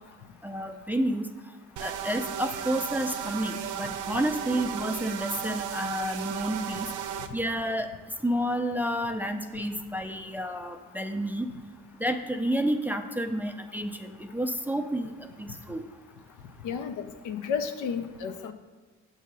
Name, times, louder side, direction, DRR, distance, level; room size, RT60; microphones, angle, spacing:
voice 1, 0.4-1.3 1.8-6.9 7.3-7.9 8.2-11.5 12.0-15.1 15.4-15.8, right 1 dB, 5° right, 5 dB, 0.3 m, -30 dB
sound 1, 1.8-7.3, right 8 dB, 80° right, 0.5 m, -35 dB
voice 2, 16.6-18.5, left 6 dB, 85° left, 8 dB, 0.6 m, -32 dB
8.1 x 2.8 x 6.0 m, 1.3 s
cardioid pair, 90°, 30 cm